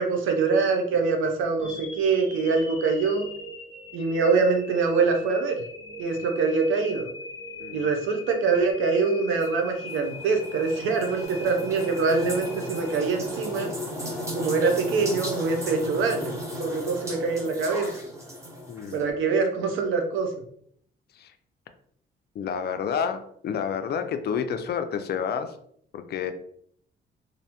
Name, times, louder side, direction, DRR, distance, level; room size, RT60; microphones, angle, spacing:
voice 1, 0.0-3.3 3.9-5.6 6.0-7.1 7.7-13.7 14.3-17.9 18.9-20.3, right 4 dB, 85° right, 4 dB, 0.6 m, -24 dB
sound 1, 1.6-13.7, left 1 dB, 30° left, 1.0 m, -41 dB
sound 2, 9.4-19.0, equal, 15° right, 0.8 m, -35 dB
voice 2, 18.7-19.1 21.1-21.3 22.3-25.6 25.9-26.3, left 7 dB, 55° left, 8 dB, 0.4 m, -29 dB
2.6 x 2.1 x 2.8 m, 0.64 s
cardioid pair, 90°, 20 cm